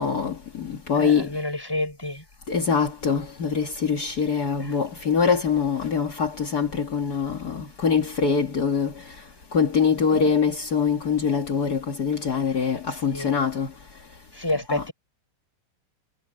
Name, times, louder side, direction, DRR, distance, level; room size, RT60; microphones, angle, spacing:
voice 1, 0.0-1.3 2.5-9.0 9.5-13.7 14.7-14.8, left 6 dB, 60° left, 2.4 m, -24 dB
voice 2, 0.9-2.2 4.6-4.8 10.0-10.2 12.9-13.3 14.3-14.9, left 1 dB, 10° left, 6.7 m, -30 dB
omnidirectional pair, 1.9 m